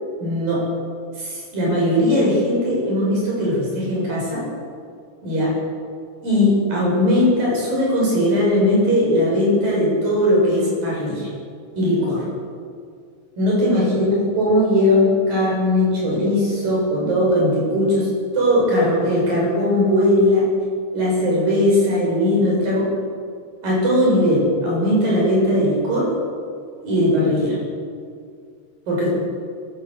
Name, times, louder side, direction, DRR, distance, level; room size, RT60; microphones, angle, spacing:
voice 1, 0.2-0.6 1.2-4.5 5.2-5.5 6.2-11.3 11.8-12.3 13.4-18.1 18.3-20.5 20.9-22.9 23.6-26.2 26.8-27.6 28.9-29.3, left 1 dB, 50° right, -4 dB, 9.0 m, -19 dB
22.5 x 14.0 x 8.3 m, 2.2 s
omnidirectional pair, 5.3 m